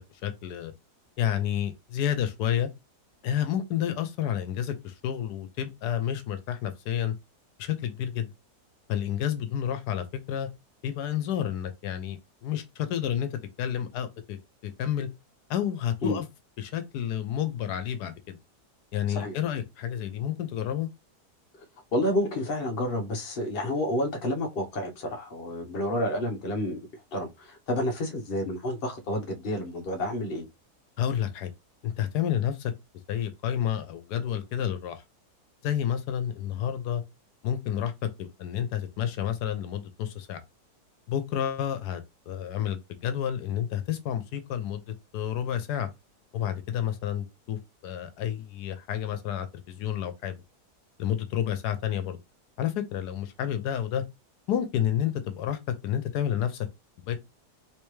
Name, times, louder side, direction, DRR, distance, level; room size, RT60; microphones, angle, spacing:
voice 1, 0.2-0.7 1.2-2.7 3.2-7.1 7.6-8.3 8.9-10.5 10.8-14.4 14.6-15.1 15.5-16.3 16.6-18.4 18.9-20.9 31.0-31.5 31.8-32.7 33.1-35.0 35.6-37.0 37.4-37.9 38.2-40.4 41.1-45.9 46.3-50.4 51.0-52.2 52.6-54.0 54.5-56.7 57.1-57.2, left 10 dB, 85° left, 1.2 m, -30 dB
voice 2, 21.9-26.8 27.1-30.5, left 1 dB, 40° left, 1.0 m, -29 dB
3.3 x 3.3 x 3.1 m
omnidirectional pair, 1.7 m